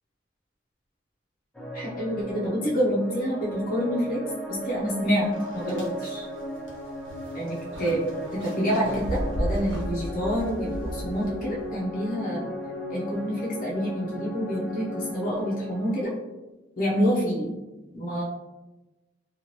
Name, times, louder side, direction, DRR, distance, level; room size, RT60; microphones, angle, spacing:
sound 1, 1.5-16.0, equal, 5° left, 0.4 m, -37 dB
voice 1, 1.7-4.2 4.5-5.3 5.5-6.2 7.3-12.5 12.9-16.1 16.8-17.5 17.9-18.2, equal, 45° left, -5 dB, 0.7 m, -27 dB
sound 2, 4.8-4.9 5.3-11.7, equal, 70° right, 0.8 m, -34 dB
2.8 x 2.4 x 2.9 m, 1.1 s
head